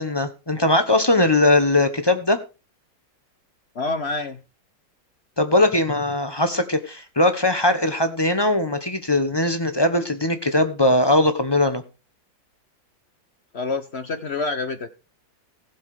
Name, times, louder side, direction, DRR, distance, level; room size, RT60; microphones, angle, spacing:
voice 1, 0.0-2.4 5.4-11.8, left 1 dB, 20° left, 9 dB, 0.7 m, -20 dB
voice 2, 3.7-4.4 13.5-14.9, left 3 dB, 45° left, 10 dB, 0.9 m, -27 dB
15.5 x 7.3 x 4.9 m, 0.30 s
omnidirectional pair, 2.1 m